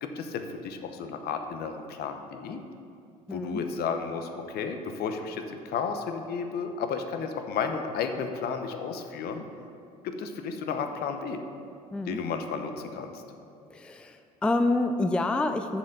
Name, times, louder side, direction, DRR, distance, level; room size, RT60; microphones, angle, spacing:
voice 1, 0.0-2.6 3.3-9.4 10.0-11.4 12.1-13.2, left 5 dB, 55° left, 6 dB, 0.9 m, -33 dB
voice 2, 3.3-3.6 11.9-12.2 13.7-15.8, left 2 dB, 5° left, 7 dB, 0.4 m, -27 dB
7.1 x 5.6 x 6.6 m, 2.5 s
hypercardioid pair, 70°, 20 cm